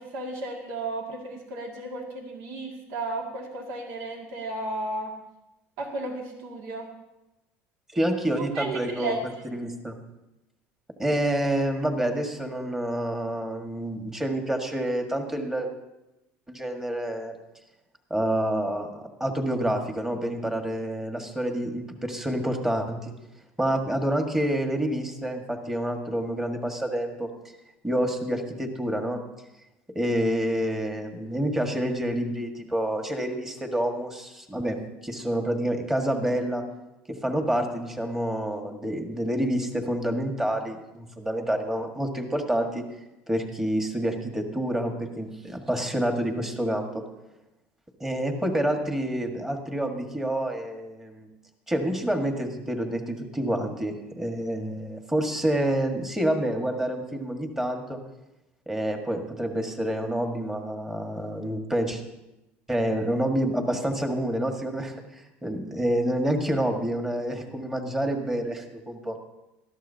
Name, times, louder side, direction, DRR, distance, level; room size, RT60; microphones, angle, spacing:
voice 1, 0.0-5.1 5.8-6.9 8.4-9.2, right 2 dB, 75° right, 0 dB, 2.2 m, -34 dB
voice 2, 7.9-9.2 9.4-10.0 11.0-15.7 16.5-17.3 18.1-23.1 23.6-27.3 27.8-29.2 29.9-34.8 35.0-36.6 37.1-42.8 43.3-47.0 48.0-51.3 51.7-58.0 58.7-62.0 62.7-69.2, right 1 dB, 10° right, 3 dB, 1.7 m, -28 dB
19.0 x 13.5 x 2.8 m, 0.95 s
supercardioid pair, 110°, 5 cm